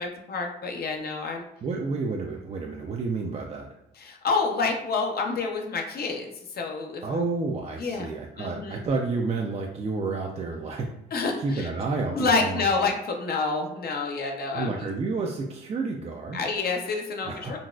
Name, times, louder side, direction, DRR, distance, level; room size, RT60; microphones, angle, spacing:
voice 1, 0.0-1.5 4.0-7.2 7.8-8.1 8.4-8.8 11.1-11.7 12.1-14.9 16.3-17.6, left 4 dB, 50° left, 2 dB, 0.6 m, -28 dB
voice 2, 1.6-3.7 7.0-10.9 11.4-12.7 14.5-16.4 17.2-17.6, right 3 dB, 30° right, 0 dB, 0.4 m, -30 dB
3.9 x 2.3 x 2.3 m, 0.83 s
cardioid pair, 90°, 20 cm